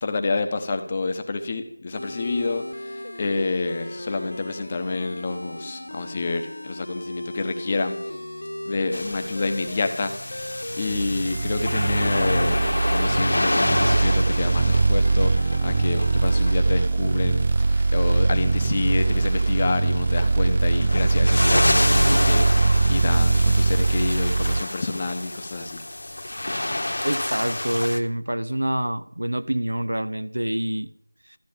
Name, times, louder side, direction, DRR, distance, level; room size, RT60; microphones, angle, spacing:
voice 1, 0.0-8.0 8.7-10.1 10.4-10.5 10.8-12.6 12.9-25.8, left 3 dB, 20° left, 0.9 m, -28 dB
sound 1, 1.9-16.6, left 1 dB, 80° left, 2.1 m, -36 dB
sound 2, 8.9-28.0, left 1 dB, 55° left, 1.4 m, -29 dB
sound 3, 10.8-24.6, right 3 dB, 15° right, 0.4 m, -21 dB
voice 2, 27.0-30.9, right 1 dB, 85° right, 0.9 m, -26 dB
13.5 x 8.2 x 8.7 m
figure-of-eight pair, 175°, 0 cm